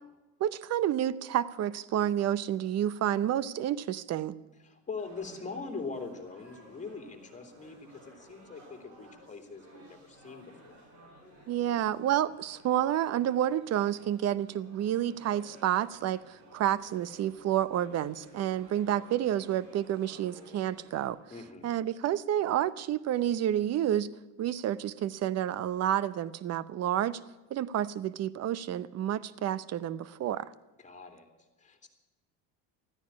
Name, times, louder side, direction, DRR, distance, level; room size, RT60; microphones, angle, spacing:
voice 1, 0.4-4.3 11.5-21.2 21.6-24.1 24.4-27.2 27.5-30.5, right 11 dB, 45° right, 19 dB, 0.7 m, -29 dB
voice 2, 4.6-10.8 21.3-21.8 30.8-31.3 31.6-31.9, left 4 dB, 20° left, 5 dB, 2.8 m, -42 dB
sound 1, 5.0-21.1, equal, 80° right, 6.5 m, -55 dB
14.5 x 10.0 x 9.6 m, 1.1 s
cardioid pair, 120°, 37 cm